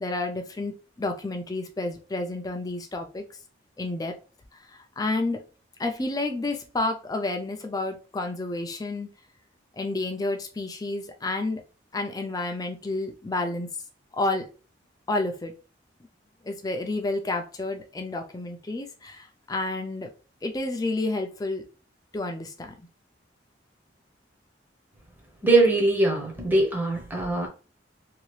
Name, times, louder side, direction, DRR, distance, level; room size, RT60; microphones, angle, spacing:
voice 1, 0.0-3.2 3.8-4.2 4.7-5.4 5.8-9.1 9.7-11.6 11.9-13.7 14.1-14.5 15.1-15.5 16.4-20.1 20.4-21.6 22.1-22.7, left 2 dB, 20° left, 0.4 m, -30 dB
voice 2, 25.4-27.5, right 2 dB, 10° right, 0.7 m, -21 dB
2.8 x 2.4 x 3.0 m
head